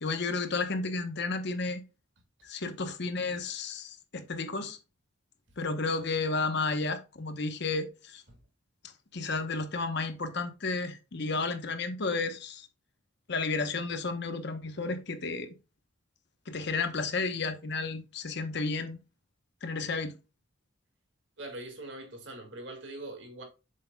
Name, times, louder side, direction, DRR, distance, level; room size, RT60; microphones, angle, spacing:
voice 1, 0.0-1.8 2.4-4.8 5.6-8.2 9.1-12.7 13.3-15.5 16.5-19.0 19.6-20.1, left 3 dB, 60° left, 1.0 m, -32 dB
voice 2, 21.4-23.4, right 2 dB, 65° right, 2.0 m, -42 dB
7.6 x 6.5 x 2.3 m
head